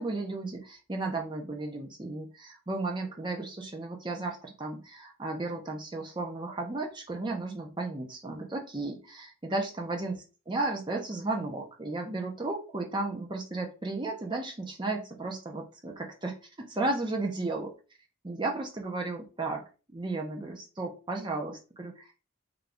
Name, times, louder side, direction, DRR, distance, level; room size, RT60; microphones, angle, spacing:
voice 1, 0.0-10.2 10.5-17.7 18.2-19.6 19.9-22.3, right 2 dB, 20° right, 2 dB, 0.5 m, -34 dB
3.7 x 2.4 x 3.3 m, 0.33 s
head